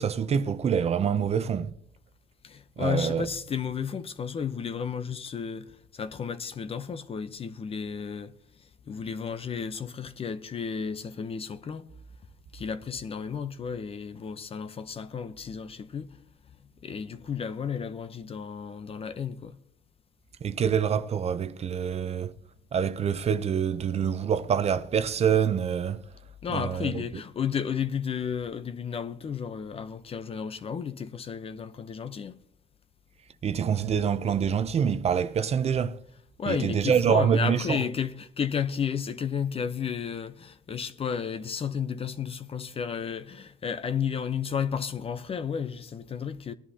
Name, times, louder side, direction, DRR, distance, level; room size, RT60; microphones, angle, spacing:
voice 1, 0.0-1.7 2.8-3.3 20.4-22.3 22.7-26.0 26.5-27.0 33.4-36.0 36.5-37.8, right 7 dB, 40° right, 0.6 m, -26 dB
voice 2, 2.4-11.9 12.5-16.2 16.8-19.6 26.4-32.4 36.4-46.5, left 7 dB, 35° left, 0.7 m, -33 dB
20.0 x 11.0 x 2.8 m
cardioid pair, 110°, 17 cm